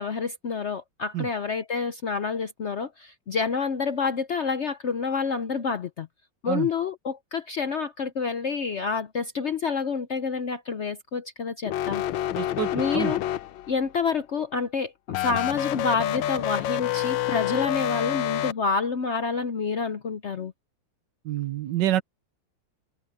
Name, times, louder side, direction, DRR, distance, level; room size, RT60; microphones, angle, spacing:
voice 1, 0.0-6.1 6.4-12.0 12.7-13.2 13.7-20.5, left 5 dB, 60° left, 0.7 m, -28 dB
sound 1, 11.7-13.8 15.1-18.5, left 12 dB, 85° left, 1.5 m, -28 dB
voice 2, 12.3-13.1 21.2-22.0, right 12 dB, 75° right, 1.4 m, -27 dB
omnidirectional pair, 2.0 m